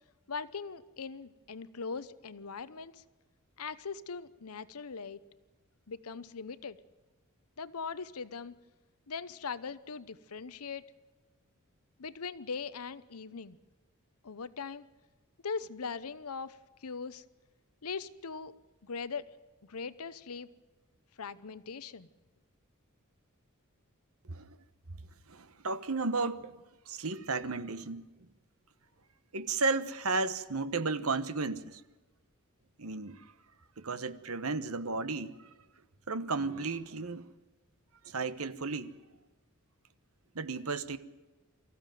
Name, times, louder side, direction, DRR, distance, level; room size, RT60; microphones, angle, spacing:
voice 1, 0.3-3.0 3.6-5.2 5.9-6.8 7.6-8.6 9.1-10.8 12.0-13.6 14.2-14.9 15.4-17.2 17.8-18.5 18.8-19.3 19.6-20.5 21.2-22.1, left 5 dB, 80° left, 0.9 m, -40 dB
voice 2, 24.2-24.6 25.3-28.3 29.3-31.8 32.8-33.3 33.8-35.5 36.1-37.3 38.0-38.9 40.3-41.0, right 3 dB, 70° right, 1.2 m, -34 dB
25.0 x 15.0 x 9.2 m
head